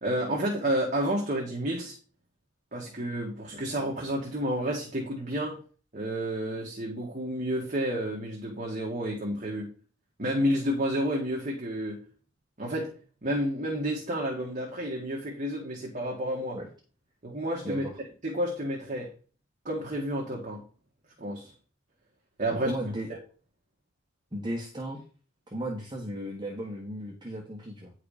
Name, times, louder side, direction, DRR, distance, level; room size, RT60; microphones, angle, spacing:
voice 1, 0.0-2.0 2.7-5.6 5.9-9.7 10.2-12.0 12.6-12.9 13.2-16.6 17.2-17.8 18.2-19.1 19.7-20.6 21.2-21.5 22.4-22.8, equal, 40° right, -1 dB, 1.9 m, -30 dB
voice 2, 22.6-23.1 24.3-25.0 25.5-27.9, right 1 dB, 25° right, -1 dB, 1.4 m, -35 dB
9.9 x 4.8 x 5.0 m, 0.38 s
head